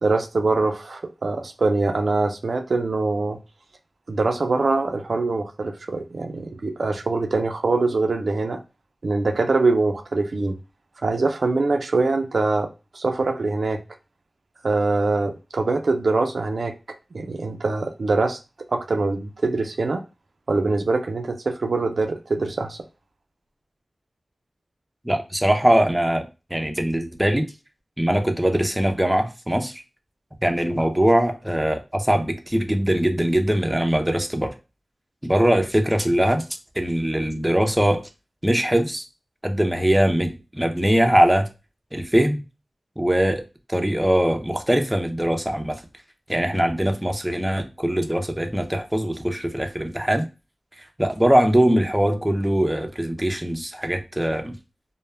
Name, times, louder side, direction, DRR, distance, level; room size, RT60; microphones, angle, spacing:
voice 1, 0.0-3.4 4.1-8.6 9.0-10.6 11.0-12.7 12.9-13.8 14.6-16.7 17.1-18.4 18.7-20.0 20.5-22.8, right 3 dB, 75° right, 0.3 m, -23 dB
voice 2, 25.0-26.2 26.5-27.5 28.0-29.8 30.4-34.5 35.2-36.4 36.8-38.0 38.4-39.0 39.4-41.5 41.9-42.4 43.0-43.4 43.7-45.8 46.3-50.3 50.8-54.6, right 1 dB, 10° right, 0.4 m, -21 dB
2.1 x 2.1 x 3.1 m
wide cardioid pair, 75°, 0 cm